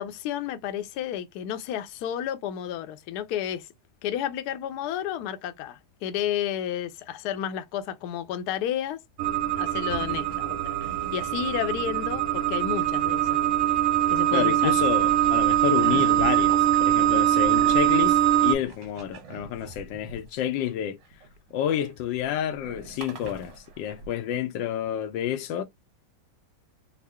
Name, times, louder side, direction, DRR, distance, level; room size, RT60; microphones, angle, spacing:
voice 1, 0.0-3.7 4.0-9.0 9.5-10.8 11.1-13.4 14.1-14.7, left 10 dB, 70° left, 1.0 m, -31 dB
sound 1, 9.2-18.5, right 12 dB, 65° right, 1.0 m, -23 dB
sound 2, 9.9-11.3 12.8-13.7 14.0-24.1, right 3 dB, 90° right, 1.6 m, -42 dB
voice 2, 14.3-21.0 21.5-25.6, left 10 dB, 90° left, 1.3 m, -29 dB
3.6 x 2.0 x 3.4 m
omnidirectional pair, 1.9 m